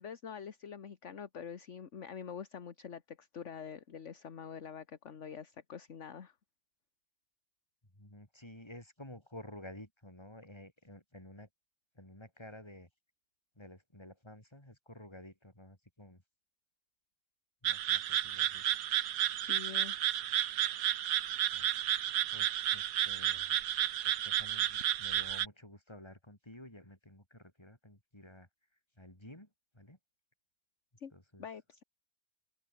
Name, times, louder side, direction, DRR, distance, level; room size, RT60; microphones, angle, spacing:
voice 1, 0.0-6.3 19.5-20.0 31.0-31.1 31.4-31.8, left 7 dB, 50° left, 1.6 m, -45 dB
voice 2, 8.0-11.5 11.9-12.9 13.6-16.2 17.6-18.6 21.5-21.7 22.0-23.5 24.0-28.5 29.0-29.5 29.7-30.0 31.1-31.4, left 1 dB, 15° left, 4.9 m, -52 dB
sound 1, 17.6-25.5, right 11 dB, 75° right, 1.4 m, -32 dB
open air
omnidirectional pair, 1.7 m